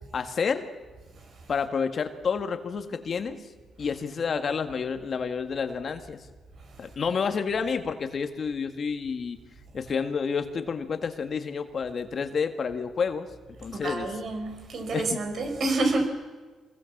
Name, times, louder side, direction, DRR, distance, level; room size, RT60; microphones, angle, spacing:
voice 1, 0.1-0.7 1.5-3.4 3.8-6.3 6.8-9.4 9.7-13.3 13.6-14.1 14.9-15.2, left 5 dB, 45° left, 8 dB, 1.9 m, -29 dB
voice 2, 13.7-16.1, right 2 dB, 55° right, 5 dB, 5.1 m, -28 dB
26.5 x 21.5 x 7.4 m, 1.3 s
cardioid pair, 100°, 0 cm